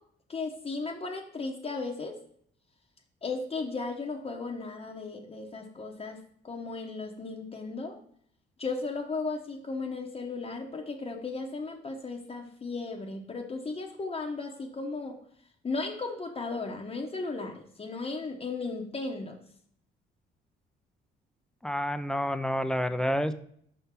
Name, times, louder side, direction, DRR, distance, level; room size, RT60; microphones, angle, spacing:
voice 1, 0.3-2.2 3.2-8.0 8.6-15.2 15.6-19.4, left 3 dB, 30° left, 1 dB, 0.9 m, -35 dB
voice 2, 21.6-23.3, equal, 5° left, 10 dB, 0.5 m, -29 dB
5.3 x 3.7 x 5.7 m, 0.64 s
cardioid pair, 90°, 20 cm